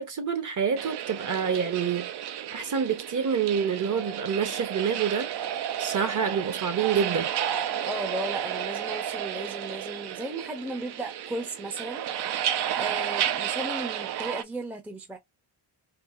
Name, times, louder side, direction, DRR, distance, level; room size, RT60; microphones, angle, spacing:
voice 1, 0.0-2.1 2.5-5.3 5.8-7.3, right 7 dB, 40° right, 0.9 m, -27 dB
sound 1, 0.8-14.4, right 10 dB, 55° right, 0.5 m, -32 dB
voice 2, 7.8-12.0 12.7-15.2, right 1 dB, 5° right, 0.5 m, -35 dB
4.7 x 2.0 x 2.4 m
wide cardioid pair, 140°, 50 cm